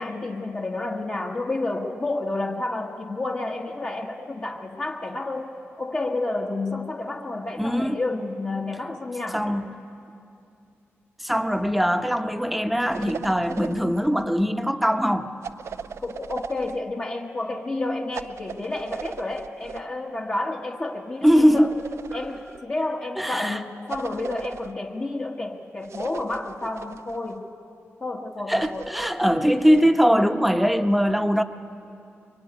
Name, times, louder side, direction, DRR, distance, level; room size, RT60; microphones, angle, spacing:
voice 1, 0.0-5.5 5.8-9.6 16.0-21.7 22.1-27.5 28.0-28.9, left 2 dB, 35° left, -2 dB, 1.6 m, -30 dB
voice 2, 7.6-8.0 9.3-9.7 11.2-15.3 21.2-21.7 23.2-23.6 28.5-31.4, equal, ahead, 6 dB, 1.1 m, -21 dB
sound 1, 12.9-14.3 15.4-16.8 18.1-19.9 21.2-22.6 23.9-24.7 25.8-27.3 28.6-29.9, right 7 dB, 80° right, 0.5 m, -39 dB
24.5 x 24.0 x 9.6 m, 2.6 s
wide cardioid pair, 115°, 5 cm